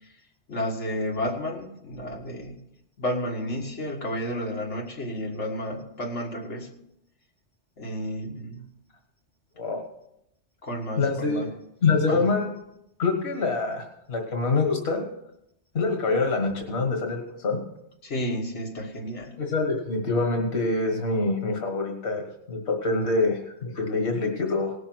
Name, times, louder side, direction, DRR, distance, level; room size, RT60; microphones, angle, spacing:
voice 1, 0.5-2.6 3.0-6.7 7.8-8.6 10.6-11.5 12.1-12.3 18.0-19.3, equal, 90° left, 0 dB, 2.1 m, -31 dB
voice 2, 11.0-11.5 11.8-12.5 13.0-15.0 15.7-17.6 19.4-24.7, left 3 dB, 70° left, 2 dB, 1.8 m, -25 dB
18.0 x 6.3 x 6.1 m, 0.82 s
omnidirectional pair, 1.2 m